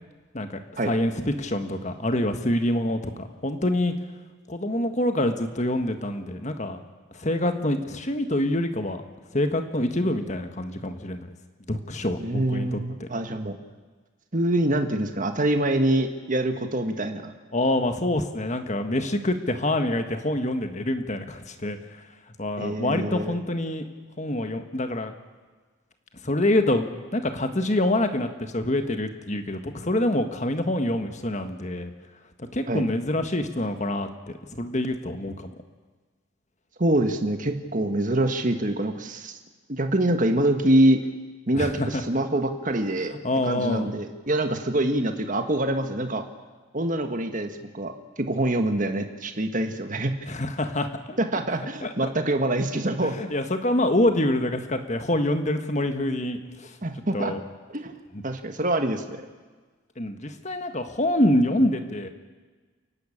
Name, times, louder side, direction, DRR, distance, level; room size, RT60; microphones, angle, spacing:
voice 1, 0.9-3.9 4.5-6.8 7.1-9.0 9.3-11.3 11.7-13.1 17.5-21.8 22.4-23.8 24.2-25.1 26.2-26.9 27.1-31.9 32.5-34.1 34.5-35.3 41.5-42.0 43.2-43.9 50.3-51.2 51.8-52.1 53.1-56.7 57.1-57.4 60.0-62.1, left 1 dB, 35° left, 7 dB, 1.5 m, -26 dB
voice 2, 12.2-13.6 14.3-17.3 22.6-23.4 32.7-32.8 36.8-39.4 39.7-41.0 41.5-43.2 43.4-46.2 46.7-50.1 51.2-53.2 56.8-57.3 57.7-57.9 58.2-59.3, right 1 dB, 40° right, 6 dB, 1.6 m, -25 dB
29.0 x 11.5 x 8.7 m, 1.4 s
head